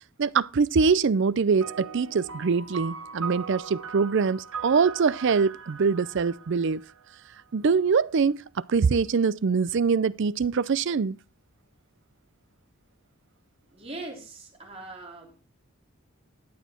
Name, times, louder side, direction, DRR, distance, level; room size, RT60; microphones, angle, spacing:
voice 1, 0.2-6.8 7.5-8.4 8.7-11.2, right 5 dB, 60° right, 0.5 m, -23 dB
sound 1, 1.6-7.4, right 6 dB, 75° right, 1.3 m, -40 dB
voice 2, 13.7-15.4, right 2 dB, 30° right, 3.4 m, -41 dB
12.0 x 8.4 x 4.3 m
head